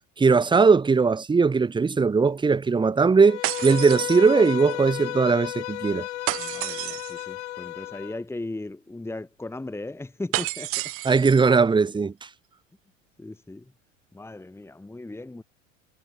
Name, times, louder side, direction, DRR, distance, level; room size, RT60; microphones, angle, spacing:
voice 1, 0.2-6.1 11.0-12.3, right 4 dB, 10° right, 1.4 m, -19 dB
Bowed string instrument, 3.2-8.2, left 14 dB, 65° left, 1.1 m, -33 dB
sound 1, 3.4-4.7 6.3-7.3 10.3-11.5, right 18 dB, 35° right, 0.9 m, -30 dB
voice 2, 6.4-10.9 13.2-13.6 14.1-15.4, left 2 dB, 5° left, 2.6 m, -37 dB
figure-of-eight pair, 75°, 38 cm